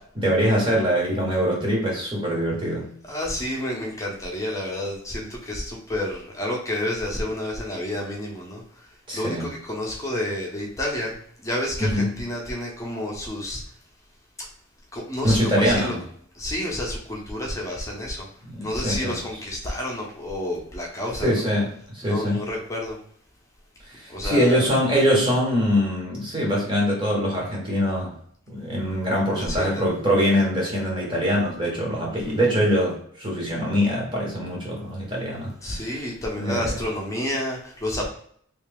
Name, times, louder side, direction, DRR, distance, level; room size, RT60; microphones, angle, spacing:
voice 1, 0.1-2.9 9.1-9.5 11.8-12.1 15.2-16.0 18.5-19.2 21.2-22.5 23.8-28.1 28.5-35.9 36.4-36.7, equal, 20° right, -3 dB, 1.1 m, -23 dB
voice 2, 3.0-13.6 14.4-14.5 14.9-15.9 16.3-21.3 22.0-23.0 24.1-24.7 29.3-29.8 32.3-32.4 35.6-38.1, left 1 dB, 15° left, -2 dB, 0.9 m, -30 dB
3.2 x 2.8 x 3.5 m, 0.62 s
head